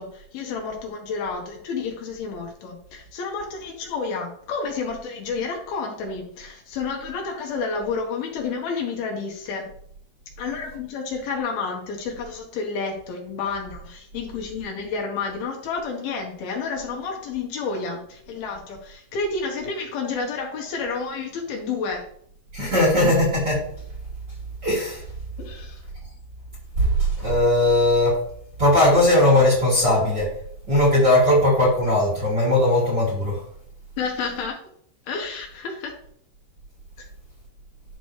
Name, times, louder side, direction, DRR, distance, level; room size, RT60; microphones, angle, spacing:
voice 1, 0.0-9.7 10.4-22.0 25.4-25.8 34.0-34.6 35.1-35.9, left 4 dB, 75° left, 2 dB, 2.9 m, -30 dB
voice 2, 22.5-23.6 24.6-25.0 26.8-28.2 28.6-30.3 30.7-33.4, left 1 dB, 30° right, -6 dB, 2.7 m, -19 dB
10.5 x 6.1 x 3.2 m, 0.65 s
omnidirectional pair, 4.7 m